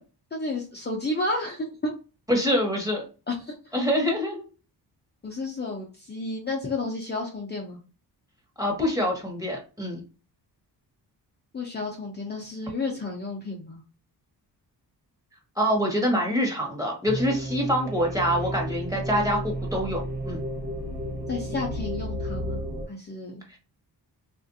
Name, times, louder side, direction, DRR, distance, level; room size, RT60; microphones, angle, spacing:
voice 1, 0.3-1.9 3.3-3.8 5.2-7.8 11.5-13.8 21.3-22.6 22.9-23.4, left 2 dB, 25° left, -1 dB, 0.6 m, -32 dB
voice 2, 2.3-3.0 3.7-4.4 8.6-10.0 15.6-20.4 23.5-23.6, equal, 10° right, 0 dB, 1.2 m, -25 dB
sound 1, 17.1-22.8, right 1 dB, 85° right, 1.3 m, -32 dB
3.5 x 2.5 x 2.6 m, 0.34 s
wide cardioid pair, 135°, 40 cm